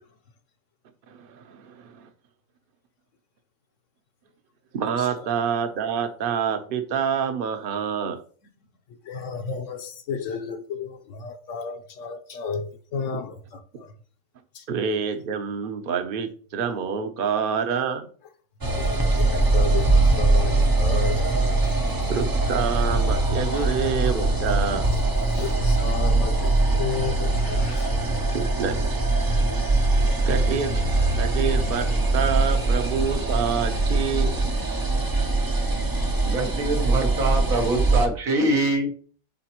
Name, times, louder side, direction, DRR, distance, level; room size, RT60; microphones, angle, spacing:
voice 1, 1.1-2.1 4.7-8.2 14.7-18.1 22.1-24.9 28.3-29.0 30.3-30.8 31.2-34.3, right 6 dB, 50° right, 0.8 m, -27 dB
voice 2, 9.0-13.9 14.5-14.6 18.8-21.4 21.6-21.9 23.5-23.8 25.3-28.0, left 4 dB, 65° left, 1.1 m, -33 dB
sound 1, 18.6-38.1, right 2 dB, 25° right, 0.5 m, -22 dB
voice 3, 36.3-38.9, right 2 dB, 85° right, 1.7 m, -24 dB
7.9 x 4.1 x 3.0 m
omnidirectional pair, 1.4 m